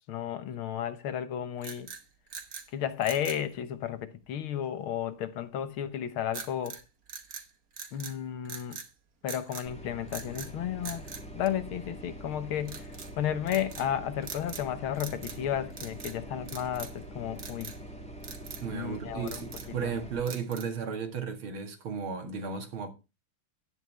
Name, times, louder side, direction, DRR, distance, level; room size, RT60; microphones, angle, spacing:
voice 1, 0.1-1.9 2.7-6.8 7.9-8.8 9.2-11.0 11.4-12.9 13.2-17.7 18.7-19.5 19.8-19.9, left 10 dB, 85° left, 2.0 m, -33 dB
sound 1, 1.6-2.7 3.0-3.5 6.3-6.8 7.1-8.2 8.5-8.9 9.3-9.7 10.1-10.5 10.8-12.0 12.7-13.1 13.5-13.9 14.2-14.7 14.9-15.4 15.7-16.2 16.5-17.0 17.4-17.8 18.2-18.7 19.1-19.8 20.3-20.8, right 6 dB, 50° right, 1.7 m, -43 dB
sound 2, 9.6-20.2, right 1 dB, 5° left, 1.6 m, -44 dB
voice 2, 18.6-22.9, right 6 dB, 80° right, 2.7 m, -34 dB
11.0 x 9.5 x 3.4 m
omnidirectional pair, 2.3 m